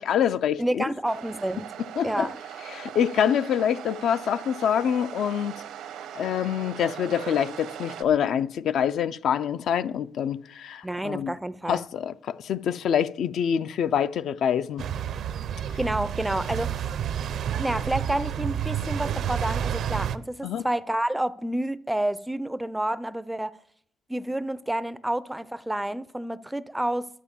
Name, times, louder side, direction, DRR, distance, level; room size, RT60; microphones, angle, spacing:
voice 1, 0.0-0.8 2.0-2.3 2.7-5.6 6.1-11.3 11.7-14.8 20.4-20.6, left 8 dB, 65° left, 0.4 m, -26 dB
voice 2, 0.6-1.7 2.0-2.4 10.8-11.9 15.8-16.8 17.6-23.6 24.1-27.1, right 1 dB, 5° right, 0.4 m, -29 dB
sound 1, 1.1-8.0, right 10 dB, 90° right, 1.0 m, -40 dB
sound 2, 14.8-20.2, right 9 dB, 60° right, 0.5 m, -29 dB
11.0 x 9.0 x 7.1 m
cardioid pair, 145°, 0 cm